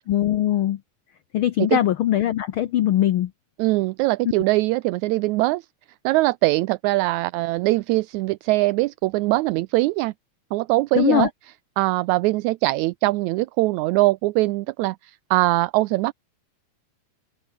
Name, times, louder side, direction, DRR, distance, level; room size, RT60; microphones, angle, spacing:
voice 1, 0.1-0.8 1.3-3.3 10.9-11.3, left 12 dB, 90° left, 1.1 m, -21 dB
voice 2, 3.6-5.7 6.0-10.1 10.5-11.3 11.8-16.1, right 20 dB, 80° right, 1.9 m, -22 dB
open air
omnidirectional pair, 3.5 m